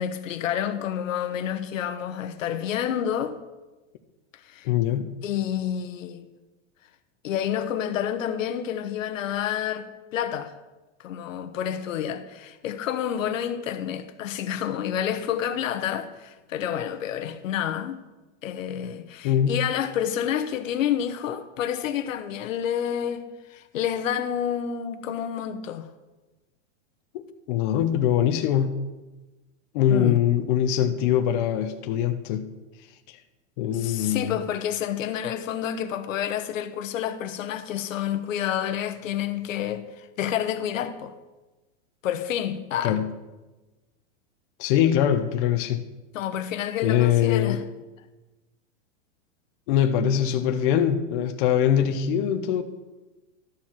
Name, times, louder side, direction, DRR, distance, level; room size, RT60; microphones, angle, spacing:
voice 1, 0.0-3.4 4.4-4.7 5.2-6.3 7.2-10.5 11.0-18.0 18.4-25.9 29.9-30.2 33.7-41.1 42.0-43.0 46.1-47.6, left 9 dB, 85° left, 1.0 m, -29 dB
voice 2, 4.6-5.1 19.2-19.6 27.1-28.7 29.7-32.5 33.6-34.4 42.8-43.1 44.6-45.8 46.8-47.6 49.7-52.6, left 10 dB, 40° left, 0.7 m, -23 dB
12.5 x 4.6 x 7.3 m
supercardioid pair, 160°, 38 cm